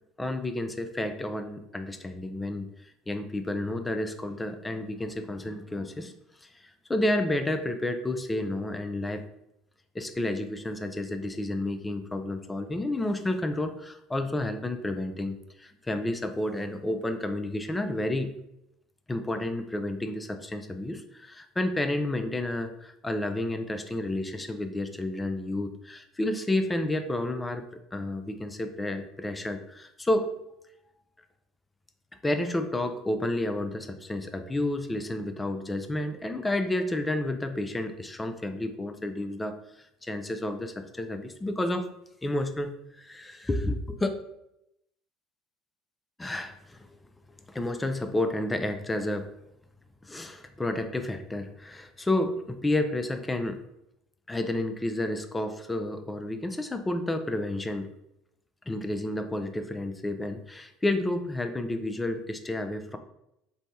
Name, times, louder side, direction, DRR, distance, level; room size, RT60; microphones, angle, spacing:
voice 1, 0.2-2.7 3.1-6.1 6.4-9.2 9.9-18.3 19.1-27.6 27.9-30.3 32.2-39.6 40.0-41.9 42.2-44.1 46.2-46.9 47.5-49.3 50.0-53.6 54.3-57.9 58.7-63.0, left 1 dB, 15° left, 8 dB, 0.3 m, -30 dB
3.2 x 2.1 x 2.7 m, 0.82 s
hypercardioid pair, 65°, 0 cm